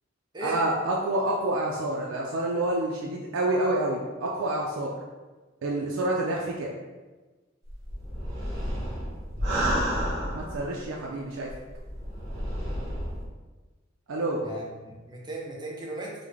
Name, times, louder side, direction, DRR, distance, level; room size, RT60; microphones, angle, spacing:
voice 1, 0.4-4.9 5.6-6.7 10.3-11.5 14.1-14.5, right 1 dB, 80° right, -2 dB, 0.4 m, -28 dB
sound 1, 7.7-10.8 11.5-13.3, equal, 60° right, 1.0 m, -30 dB
voice 2, 14.4-16.1, right 2 dB, 20° right, -2 dB, 0.5 m, -37 dB
3.3 x 2.1 x 3.4 m, 1.2 s
head